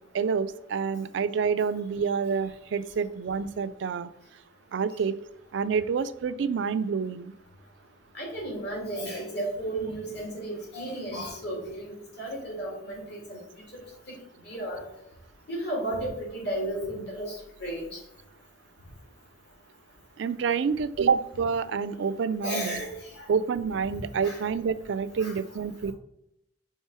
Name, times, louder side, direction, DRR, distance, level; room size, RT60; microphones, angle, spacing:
voice 1, 0.1-4.1 4.7-5.2 5.5-7.3 20.2-22.8 23.3-25.9, right 6 dB, 65° right, 14 dB, 0.3 m, -28 dB
voice 2, 8.1-13.4 13.7-13.8 14.4-14.8 15.5-18.0 22.4-23.3 24.2-24.4 25.2-25.4, right 1 dB, 60° left, -2 dB, 2.4 m, -34 dB
5.5 x 3.7 x 4.7 m, 0.76 s
head